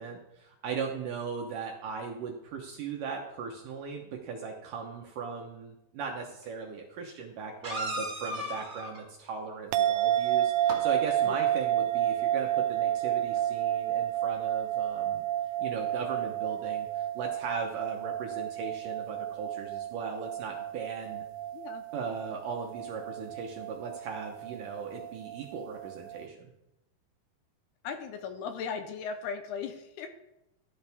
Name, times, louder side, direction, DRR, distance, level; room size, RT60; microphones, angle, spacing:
voice 1, 0.0-15.3 15.6-21.2 21.9-26.5, right 5 dB, 70° right, 1 dB, 2.1 m, -38 dB
sound 1, 6.4-6.5 7.6-9.0 10.5-10.8 13.0-13.1 13.4-13.5, equal, 25° right, 2.9 m, -35 dB
sound 2, 9.7-26.2, right 12 dB, 85° right, 2.7 m, -31 dB
voice 2, 21.5-21.8 27.8-30.1, left 6 dB, 80° left, 7 dB, 2.7 m, -37 dB
13.0 x 11.0 x 3.5 m, 0.88 s
omnidirectional pair, 4.9 m